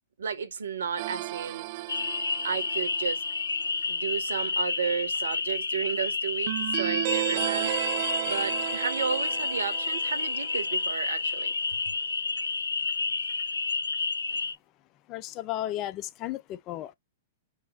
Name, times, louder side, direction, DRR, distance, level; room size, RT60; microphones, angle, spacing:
voice 1, 0.2-1.7 2.4-3.2 3.9-11.5, right 6 dB, 75° right, 1.1 m, -33 dB
sound 1, 1.0-3.3 6.5-10.9, right 20 dB, 50° right, 0.3 m, -33 dB
sound 2, 1.9-14.5, left 4 dB, 85° left, 0.5 m, -30 dB
voice 2, 15.1-16.9, left 14 dB, 35° left, 0.7 m, -34 dB
4.9 x 2.0 x 4.0 m
figure-of-eight pair, 105°, 0 cm